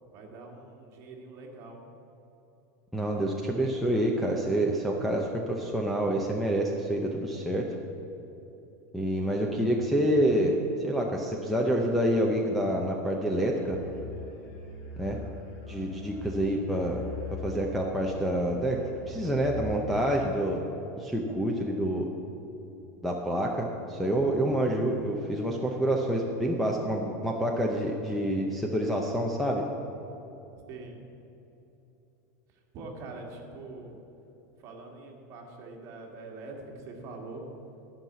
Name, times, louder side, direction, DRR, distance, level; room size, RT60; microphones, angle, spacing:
voice 1, 0.1-1.8 30.7-31.0 32.7-34.0 34.6-37.4, right 3 dB, 35° right, 0 dB, 1.9 m, -43 dB
voice 2, 2.9-7.6 8.9-10.5 10.8-13.8 15.0-15.2 15.7-17.0 17.4-18.8 19.1-20.6 21.0-22.1 23.0-29.6, right 1 dB, ahead, -3 dB, 0.6 m, -27 dB
Musical instrument, 13.6-19.9, left 2 dB, 90° left, 3.2 m, -42 dB
12.0 x 5.8 x 9.2 m, 2.9 s
supercardioid pair, 165°, 9 cm